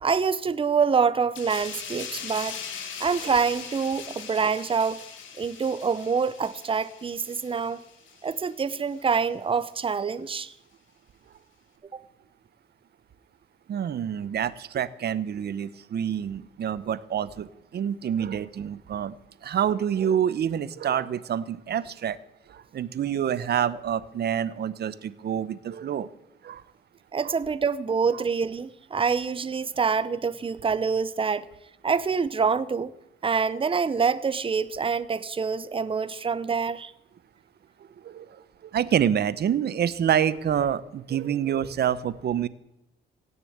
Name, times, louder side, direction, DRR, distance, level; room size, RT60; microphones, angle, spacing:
voice 1, 0.0-2.6 3.0-5.0 5.4-7.8 8.2-10.5 11.9-12.0 27.1-31.5 31.8-32.9 33.2-36.9, right 5 dB, 25° right, 0.8 m, -26 dB
sound 1, 1.3-8.5 8.9-9.1, left 7 dB, 80° left, 2.1 m, -40 dB
voice 2, 13.7-19.2 19.4-22.2 22.5-26.1 26.4-26.6 27.2-27.3 28.1-28.2 38.0-42.5, right 9 dB, 55° right, 0.9 m, -27 dB
17.0 x 6.9 x 8.7 m
cardioid pair, 90°, 20 cm